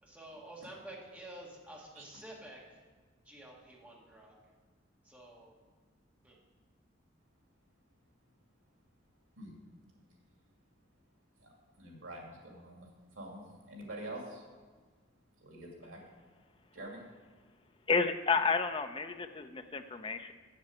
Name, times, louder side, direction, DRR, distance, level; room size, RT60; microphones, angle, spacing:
voice 1, 0.0-2.6 3.3-4.4 5.0-5.5 6.2-6.4, right 1 dB, 10° right, -3 dB, 1.8 m, -50 dB
voice 2, 11.4-14.4 15.4-16.0 16.7-17.0, right 1 dB, 90° right, -1 dB, 2.5 m, -46 dB
voice 3, 17.9-20.3, left 4 dB, 25° left, 8 dB, 0.5 m, -31 dB
7.5 x 7.2 x 7.6 m, 1.5 s
head